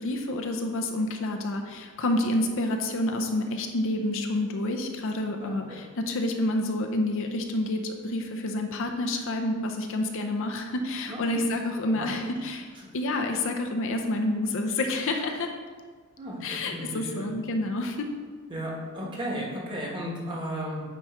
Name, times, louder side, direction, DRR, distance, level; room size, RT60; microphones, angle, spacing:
voice 1, 0.0-12.7 12.9-15.5 16.4-18.1, left 1 dB, 60° left, 4 dB, 0.6 m, -28 dB
voice 2, 5.4-5.8 11.1-11.4 11.9-12.3 16.2-17.3 18.5-20.8, equal, 20° right, -4 dB, 1.4 m, -35 dB
9.1 x 3.1 x 4.5 m, 1.5 s
head